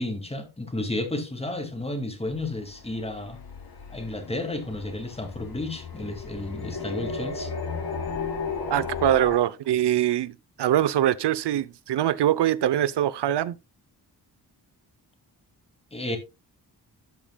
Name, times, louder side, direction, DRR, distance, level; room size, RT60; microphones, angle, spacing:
voice 1, 0.0-3.4 3.9-7.5 15.9-16.2, left 2 dB, 15° left, 2.2 m, -32 dB
sound 1, 2.2-9.4, left 5 dB, 60° left, 3.1 m, -35 dB
voice 2, 8.7-10.3 10.6-13.6, right 11 dB, 80° right, 0.7 m, -23 dB
12.5 x 8.7 x 2.2 m
wide cardioid pair, 135°, 40 cm